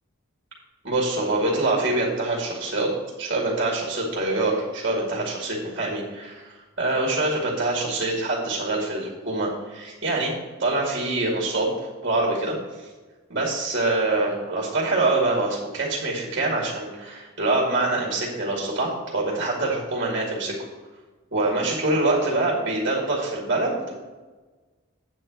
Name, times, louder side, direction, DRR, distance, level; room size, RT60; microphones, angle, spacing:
voice 1, 0.8-2.9 3.2-10.3 10.6-11.7 12.0-12.9 13.3-20.6 21.3-23.9, right 2 dB, 50° right, -3 dB, 2.1 m, -25 dB
9.1 x 4.5 x 7.4 m, 1.3 s
head